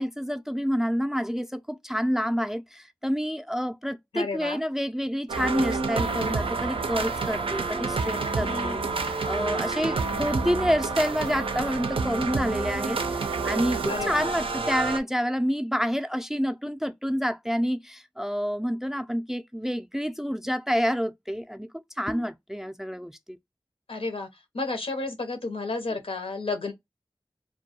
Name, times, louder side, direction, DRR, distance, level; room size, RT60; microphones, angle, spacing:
voice 1, 0.0-23.4, equal, 5° right, 0.4 m, -28 dB
voice 2, 4.1-4.6 8.4-9.2 13.9-14.3 23.9-24.3 24.5-26.7, left 3 dB, 85° left, 0.7 m, -32 dB
sound 1, 5.3-15.0, right 4 dB, 75° right, 0.4 m, -29 dB
2.2 x 2.2 x 2.7 m
wide cardioid pair, 45°, 9 cm